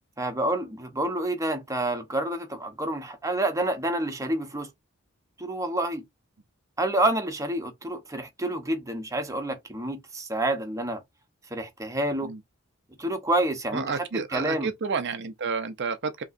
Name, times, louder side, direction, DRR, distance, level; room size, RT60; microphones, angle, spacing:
voice 1, 0.2-4.7 5.4-6.0 6.8-11.0 11.5-12.3 13.0-14.7, right 1 dB, 15° right, 0.9 m, -28 dB
voice 2, 13.7-16.2, right 5 dB, 55° right, 0.6 m, -30 dB
5.2 x 3.0 x 2.5 m
head